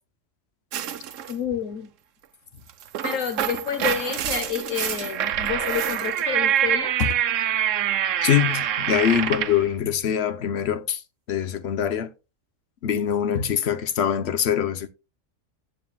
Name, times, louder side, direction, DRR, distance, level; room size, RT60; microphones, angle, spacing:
sound 1, 0.7-1.4 2.7-9.6, right 10 dB, 70° right, 1.0 m, -25 dB
voice 1, 1.3-1.9 3.0-7.2 13.3-13.4, left 8 dB, 75° left, 1.2 m, -29 dB
voice 2, 8.2-11.0 11.3-12.1 12.8-14.9, left 9 dB, 60° left, 1.0 m, -23 dB
14.5 x 7.7 x 2.2 m
omnidirectional pair, 1.4 m